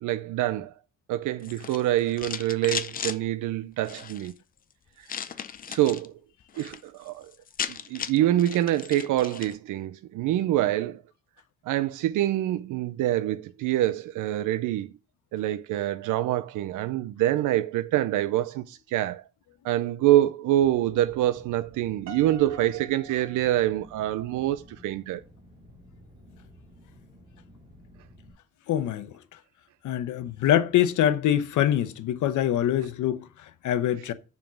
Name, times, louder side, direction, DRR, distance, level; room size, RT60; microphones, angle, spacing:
voice 1, 0.0-0.7 1.1-4.3 5.1-5.2 5.7-6.1 6.6-7.3 7.7-11.0 11.7-14.9 15.3-19.3 19.6-25.2, right 14 dB, 85° right, 0.6 m, -26 dB
sound 1, 1.4-3.2 3.8-4.3 5.1-6.1 6.4-6.8 7.1-7.2 7.3-9.6, left 7 dB, 30° left, 0.5 m, -36 dB
sound 2, 20.6-28.3, left 1 dB, 15° right, 3.3 m, -53 dB
Piano, 22.1-24.3, right 2 dB, 60° right, 1.2 m, -47 dB
voice 2, 28.7-29.1 29.8-34.1, left 11 dB, 75° left, 1.0 m, -24 dB
7.1 x 5.6 x 6.2 m
cardioid pair, 175°, 30 cm